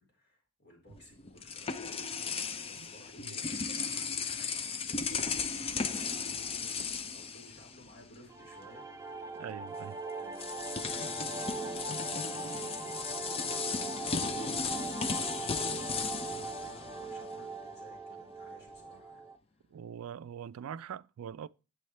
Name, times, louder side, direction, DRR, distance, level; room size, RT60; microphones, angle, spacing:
voice 1, 0.0-9.4 10.1-19.3, left 1 dB, 50° left, 4.1 m, -58 dB
sound 1, 0.9-8.2 8.4-8.7 9.8-9.9 10.3-17.5, left 5 dB, 25° left, 0.5 m, -36 dB
sound 2, 8.3-19.4, right 3 dB, 15° right, 0.6 m, -41 dB
voice 2, 9.4-10.0 19.7-21.5, right 8 dB, 75° right, 0.3 m, -43 dB
9.4 x 7.7 x 3.3 m
head